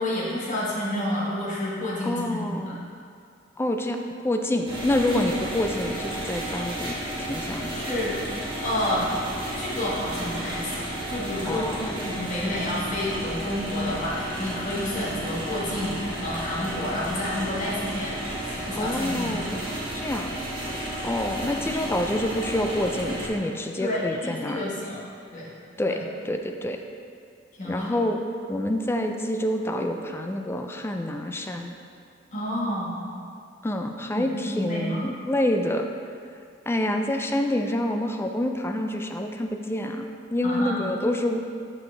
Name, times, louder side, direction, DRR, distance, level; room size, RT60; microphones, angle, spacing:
voice 1, 0.0-2.7 7.7-8.1 8.6-9.1 9.6-19.4 20.6-20.7 21.7-21.8 23.8-25.0 25.3-25.5 27.6-27.9 32.3-33.0 34.1-34.2 34.5-35.0 40.4-40.8, left 1 dB, 40° left, -6 dB, 1.6 m, -30 dB
voice 2, 2.0-2.8 3.6-4.0 4.2-7.7 11.5-12.0 18.8-20.3 21.0-24.6 25.8-26.0 26.2-26.8 27.6-28.2 28.5-31.7 33.6-35.9 36.7-41.4, left 1 dB, 15° left, 4 dB, 0.4 m, -27 dB
sound 1, 4.7-23.3, right 1 dB, 30° right, 1.2 m, -32 dB
7.1 x 6.0 x 3.3 m, 2.3 s
head